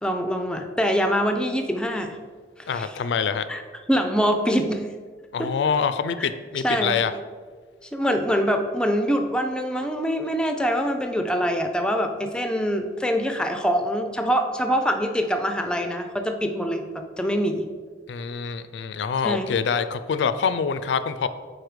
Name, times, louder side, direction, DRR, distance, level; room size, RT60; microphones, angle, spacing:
voice 1, 0.0-2.2 2.7-2.9 3.5-3.6 3.9-4.8 5.4-5.5 6.2-6.3 6.6-7.0 7.8-17.7 19.2-19.6, equal, 5° left, 6 dB, 0.4 m, -24 dB
voice 2, 2.7-3.5 5.3-7.1 18.1-21.3, left 6 dB, 75° left, 13 dB, 0.3 m, -25 dB
4.6 x 4.2 x 4.9 m, 1.5 s
head